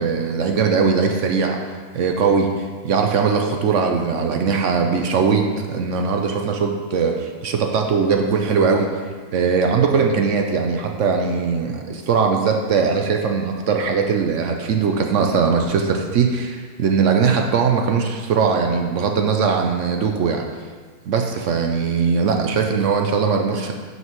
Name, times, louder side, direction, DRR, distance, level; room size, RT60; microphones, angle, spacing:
voice 1, 0.0-1.6 1.9-8.9 9.3-20.4 21.1-23.7, right 5 dB, 65° right, 3 dB, 0.8 m, -20 dB
9.3 x 5.6 x 3.0 m, 1.5 s
omnidirectional pair, 1.6 m